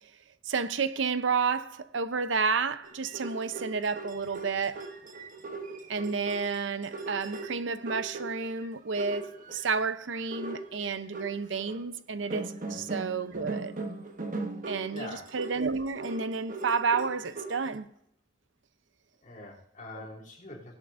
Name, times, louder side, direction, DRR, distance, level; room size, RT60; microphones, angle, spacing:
voice 1, 0.5-4.8 5.9-13.8 14.7-17.9 19.9-20.0, right 5 dB, 75° right, 0.7 m, -31 dB
sound 1, 2.8-8.7 9.0-9.7 10.2-11.8 12.3-17.7, right 3 dB, 45° right, 1.1 m, -39 dB
voice 2, 14.9-15.3 19.2-20.7, left 2 dB, 45° left, 3.1 m, -44 dB
16.5 x 11.5 x 2.6 m
head